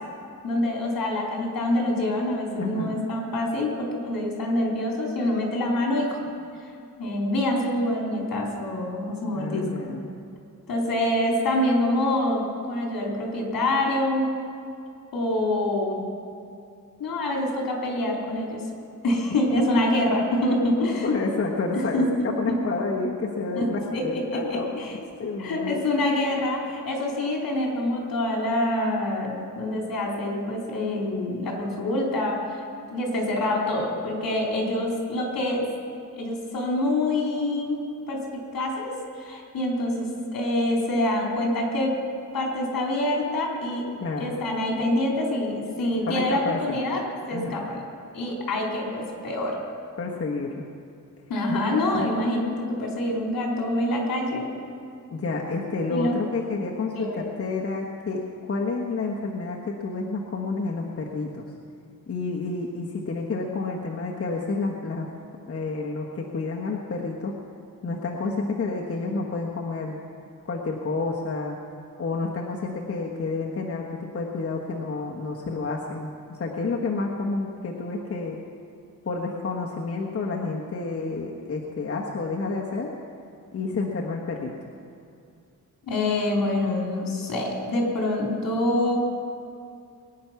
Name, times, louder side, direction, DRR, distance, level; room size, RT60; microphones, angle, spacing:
voice 1, 0.4-6.2 7.0-9.9 10.7-14.2 15.1-16.0 17.0-18.6 19.0-21.1 21.7-22.6 23.6-23.7 23.9-25.0 25.4-32.6 32.9-35.6 36.1-37.8 38.1-38.2 38.5-42.0 42.3-43.8 44.2-47.0 47.3-47.8 48.1-49.6 51.3-54.5 55.9-56.2 56.9-57.2 85.9-89.0, left 1 dB, 75° left, -1 dB, 3.9 m, -26 dB
voice 2, 2.6-3.0 9.3-10.1 19.5-19.6 21.0-22.0 22.4-24.7 25.2-25.8 44.0-44.4 46.1-46.8 47.3-47.6 50.0-50.6 51.5-51.6 51.9-52.1 55.1-61.5 62.1-65.1 65.5-67.3 67.8-70.0 70.4-71.6 72.0-78.4 79.0-82.9 83.5-84.5, left 3 dB, 40° left, -2 dB, 1.4 m, -29 dB
22.0 x 9.5 x 5.8 m, 2.5 s
wide cardioid pair, 125°, 35 cm